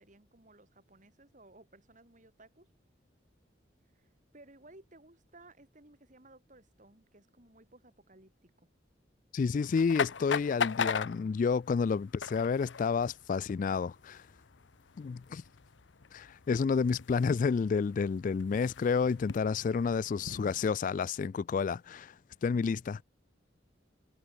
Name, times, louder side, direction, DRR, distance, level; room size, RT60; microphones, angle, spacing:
voice 1, 0.0-2.7 3.9-8.7, right 2 dB, 45° right, 5.2 m, -58 dB
voice 2, 9.3-14.3 15.0-15.4 16.1-22.1 22.4-23.0, left 5 dB, 45° left, 0.3 m, -30 dB
sound 1, 9.6-20.7, left 6 dB, 80° left, 0.8 m, -40 dB
head